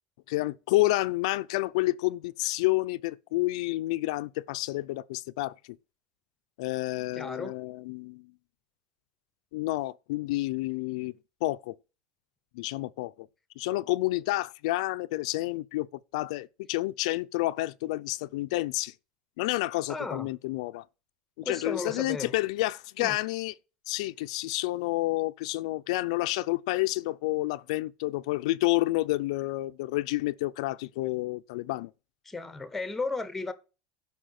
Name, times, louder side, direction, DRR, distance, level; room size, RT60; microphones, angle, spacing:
voice 1, 0.3-5.8 6.6-8.3 9.5-11.1 11.4-11.8 12.5-13.3 13.6-15.9 16.1-18.9 19.4-20.8 21.4-23.5 23.9-31.9, left 19 dB, 80° left, 0.4 m, -29 dB
voice 2, 7.2-7.6 19.9-20.3 21.4-22.3 23.0-23.2 32.3-33.5, left 3 dB, 5° left, 0.8 m, -34 dB
11.5 x 5.5 x 6.5 m
cardioid pair, 165°, 3 cm